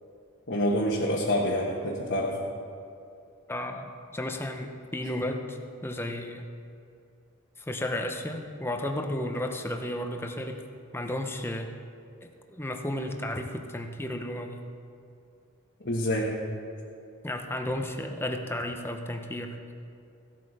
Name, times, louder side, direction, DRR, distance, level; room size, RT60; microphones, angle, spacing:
voice 1, 0.5-2.4 15.8-16.3, equal, 50° left, -3 dB, 1.3 m, -27 dB
voice 2, 3.5-6.5 7.6-10.6 10.9-11.7 12.2-14.6 17.2-19.7, left 1 dB, 10° left, 4 dB, 0.8 m, -33 dB
16.0 x 8.2 x 4.9 m, 2.5 s
head